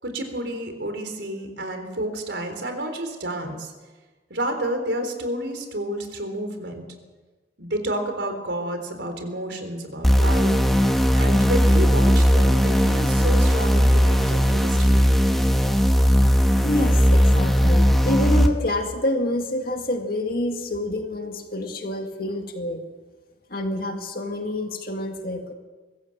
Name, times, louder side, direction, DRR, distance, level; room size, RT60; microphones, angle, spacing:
voice 1, 0.0-3.7 4.3-6.9 7.6-10.6 11.2-15.1, right 1 dB, 80° right, 6 dB, 3.9 m, -30 dB
sound 1, 10.0-18.5, equal, ahead, 1.7 m, -18 dB
voice 2, 16.6-22.8 23.5-25.5, left 1 dB, 55° left, 4 dB, 2.1 m, -27 dB
23.5 x 15.5 x 7.3 m, 1.3 s
head